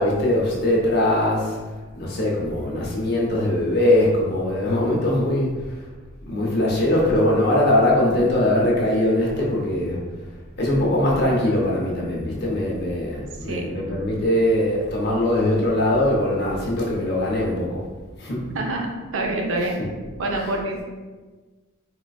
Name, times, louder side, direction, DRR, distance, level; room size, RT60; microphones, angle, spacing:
voice 1, 0.0-5.9 6.3-10.0 10.6-17.8 18.2-18.4 19.8-19.9 20.3-20.4, left 1 dB, 50° left, -3 dB, 0.7 m, -21 dB
voice 2, 13.4-13.7 18.5-19.8 20.2-20.8, right 2 dB, 75° right, 1 dB, 0.5 m, -26 dB
3.7 x 2.4 x 2.3 m, 1.3 s
head